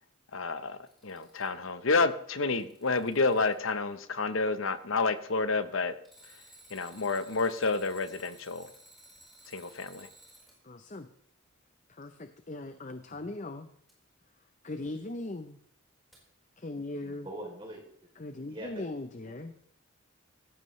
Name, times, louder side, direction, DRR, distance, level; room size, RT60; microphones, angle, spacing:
voice 1, 0.3-5.9 6.7-8.7 9.5-10.1, left 3 dB, 70° left, 12 dB, 0.9 m, -29 dB
Alarm, 0.7-1.7 2.3-3.7 6.0-10.6 13.9-14.0 16.1-16.2, right 1 dB, ahead, 4.5 m, -56 dB
voice 2, 10.6-11.1 11.9-13.7 14.6-15.6 16.6-17.3 18.2-19.5, left 2 dB, 35° left, 9 dB, 0.7 m, -39 dB
voice 3, 17.0-17.8 18.5-18.8 19.3-19.6, right 1 dB, 25° right, 0 dB, 3.3 m, -43 dB
18.0 x 15.0 x 3.2 m, 0.67 s
head